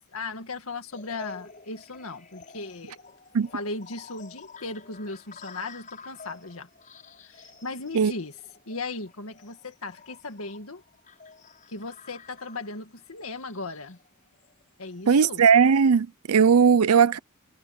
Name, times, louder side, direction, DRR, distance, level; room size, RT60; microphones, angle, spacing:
voice 1, 0.1-3.0 3.5-6.7 7.2-8.3 8.7-10.8 11.7-14.0 14.8-15.4, left 3 dB, 70° left, 1.9 m, -37 dB
sound 1, 0.9-15.2, left 4 dB, 40° left, 6.5 m, -49 dB
voice 2, 15.1-17.2, right 6 dB, 85° right, 0.5 m, -18 dB
head